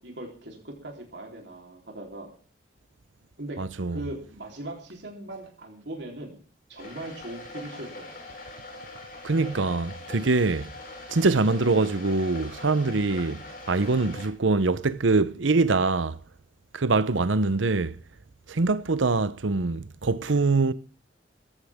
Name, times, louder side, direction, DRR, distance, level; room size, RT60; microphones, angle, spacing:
voice 1, 0.0-2.3 3.4-3.6 3.9-6.4 6.7-8.2 13.3-13.5, right 1 dB, 65° right, 3.8 m, -40 dB
voice 2, 3.6-4.0 9.2-10.7 11.1-16.2 16.7-17.9 18.5-20.7, right 3 dB, 85° right, 0.8 m, -24 dB
sound 1, 6.8-14.3, left 2 dB, 50° left, 4.5 m, -42 dB
18.0 x 15.0 x 3.7 m
head